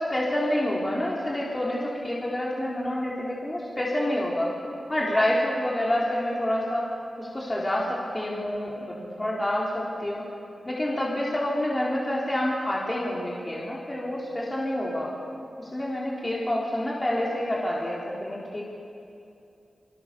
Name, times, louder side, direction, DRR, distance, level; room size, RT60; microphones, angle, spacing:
voice 1, 0.0-4.5 4.9-6.9 7.2-10.2 10.6-15.1 15.6-18.6, left 1 dB, 20° left, -4 dB, 4.2 m, -28 dB
27.5 x 26.0 x 7.1 m, 2.7 s
wide cardioid pair, 100°, 0 cm